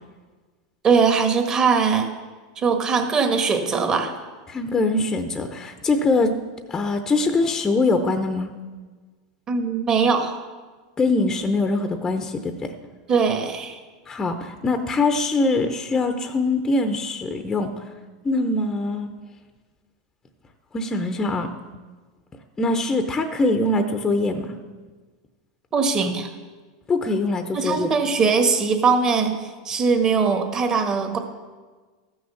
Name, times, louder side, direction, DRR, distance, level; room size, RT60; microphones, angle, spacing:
voice 1, 0.8-2.1 2.6-4.1 9.5-10.4 13.1-13.8 25.7-26.3 27.5-29.3 29.6-31.2, right 5 dB, 25° right, 5 dB, 1.5 m, -21 dB
voice 2, 4.5-6.3 6.7-8.5 11.0-12.7 14.1-17.8 18.2-19.1 20.7-21.5 22.6-24.5 26.9-27.9, left 2 dB, 15° left, 7 dB, 0.7 m, -23 dB
14.0 x 6.3 x 7.1 m, 1.4 s
supercardioid pair, 130°, 3 cm